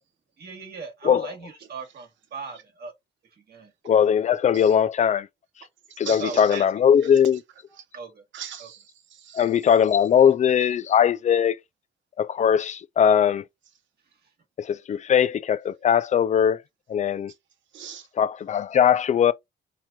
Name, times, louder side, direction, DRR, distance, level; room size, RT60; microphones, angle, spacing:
voice 1, 0.4-2.9 3.5-3.7 6.0-6.7 7.7-8.2 8.6-8.7, right 5 dB, 55° right, 1.4 m, -38 dB
voice 2, 3.9-5.3 6.0-7.4 9.3-11.6 12.2-13.4 14.6-16.6 16.9-17.3 18.2-19.3, left 8 dB, 35° left, 0.4 m, -20 dB
voice 3, 5.9-6.6 7.0-7.2 8.3-9.5 17.7-18.1, right 9 dB, 70° right, 0.9 m, -40 dB
4.1 x 3.0 x 2.2 m
cardioid pair, 90°, 20 cm